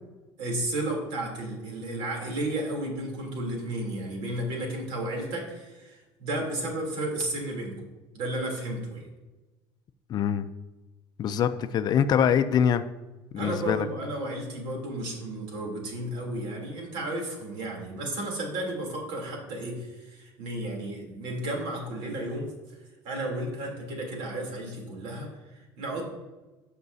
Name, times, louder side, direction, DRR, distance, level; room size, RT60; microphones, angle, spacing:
voice 1, 0.4-7.7 8.1-9.1 13.4-22.5 23.0-26.1, right 1 dB, 75° right, 0 dB, 3.2 m, -33 dB
voice 2, 10.1-10.5 11.2-12.8 13.3-13.9, left 8 dB, 45° left, 11 dB, 0.5 m, -24 dB
15.5 x 6.0 x 2.7 m, 1.1 s
cardioid pair, 130°, 10 cm